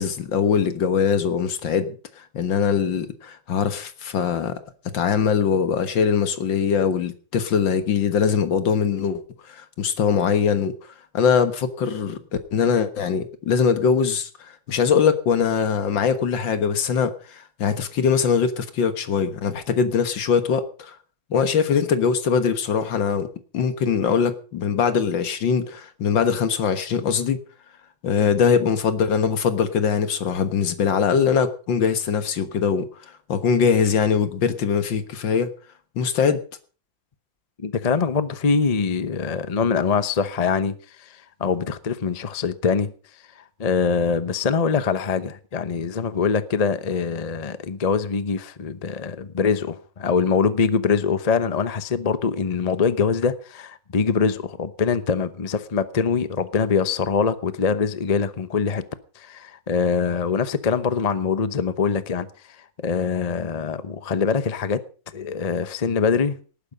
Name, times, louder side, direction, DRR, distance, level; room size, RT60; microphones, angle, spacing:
voice 1, 0.0-1.9 2.3-4.6 4.9-9.2 9.5-10.7 11.1-12.2 12.5-21.0 21.3-23.3 23.5-27.4 28.0-32.9 33.3-35.5 36.0-36.4, left 6 dB, 75° left, 2.1 m, -22 dB
voice 2, 37.6-41.1 41.4-42.9 43.6-58.8 59.2-62.3 62.8-64.8 65.1-66.4, left 5 dB, 35° left, 0.6 m, -23 dB
18.5 x 9.8 x 5.3 m
omnidirectional pair, 2.1 m